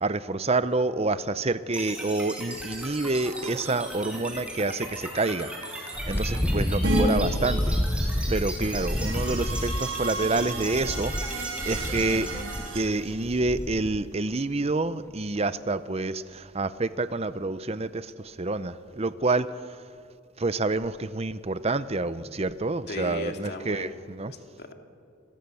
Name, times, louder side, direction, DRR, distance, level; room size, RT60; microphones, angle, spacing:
voice 1, 0.0-5.5 6.1-12.4 12.7-19.5 20.4-24.3, right 2 dB, 30° right, 14 dB, 0.7 m, -28 dB
sound 1, 1.7-13.8, right 1 dB, 5° right, 5.8 m, -38 dB
Wind, 5.9-14.1, equal, 10° left, 0.6 m, -30 dB
sound 2, 6.8-7.0 8.4-12.8, right 2 dB, 70° right, 5.2 m, -32 dB
voice 2, 22.9-23.9 24.3-24.7, left 2 dB, 50° left, 4 dB, 2.5 m, -37 dB
29.5 x 22.5 x 7.0 m, 2.3 s
head